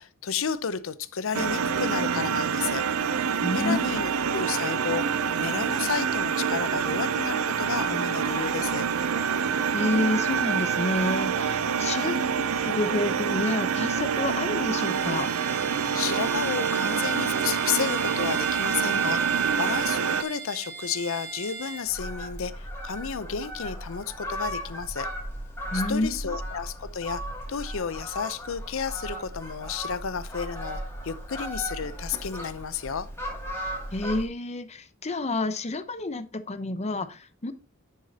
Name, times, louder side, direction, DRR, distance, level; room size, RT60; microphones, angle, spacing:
voice 1, 0.0-2.8 3.5-8.9 11.8-12.2 15.9-25.1 25.7-27.2 27.5-33.1, left 6 dB, 65° left, 0.6 m, -32 dB
sound 1, 1.3-20.2, right 6 dB, 85° right, 0.6 m, -26 dB
voice 2, 3.4-4.0 9.7-12.2 12.6-15.3 25.7-26.4 33.9-37.5, left 2 dB, 30° left, 0.7 m, -29 dB
Bowed string instrument, 14.7-21.9, right 4 dB, 30° right, 3.8 m, -39 dB
Fowl, 21.9-34.3, equal, 10° left, 2.4 m, -36 dB
10.5 x 6.4 x 2.8 m
head